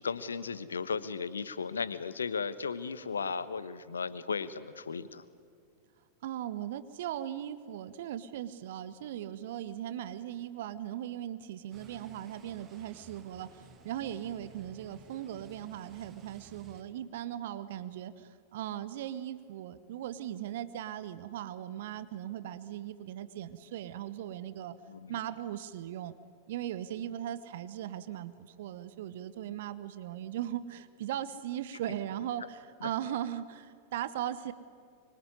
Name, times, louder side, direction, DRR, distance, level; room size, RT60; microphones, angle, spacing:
voice 1, 0.0-5.2 24.9-25.2, left 5 dB, 70° left, 15 dB, 1.2 m, -35 dB
voice 2, 6.2-24.7 25.1-26.1 26.5-34.5, right 11 dB, 55° right, 14 dB, 1.1 m, -38 dB
sound 1, 11.7-16.8, right 6 dB, 30° right, 2.4 m, -56 dB
25.0 x 24.5 x 9.6 m, 2.2 s
figure-of-eight pair, 90°, 0 cm